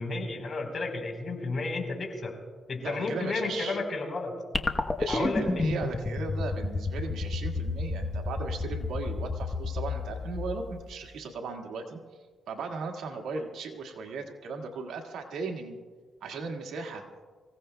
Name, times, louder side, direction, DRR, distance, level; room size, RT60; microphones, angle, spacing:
voice 1, 0.0-2.3 2.7-4.3 5.1-5.7, left 3 dB, 50° left, 2 dB, 4.0 m, -32 dB
voice 2, 2.8-3.8 5.0-12.0 12.5-15.8 16.2-17.1, right 4 dB, 90° right, 3 dB, 1.7 m, -37 dB
sound 1, 4.5-11.1, left 3 dB, 25° left, 1.0 m, -31 dB
26.0 x 16.5 x 2.2 m, 1.5 s
cardioid pair, 105°, 0 cm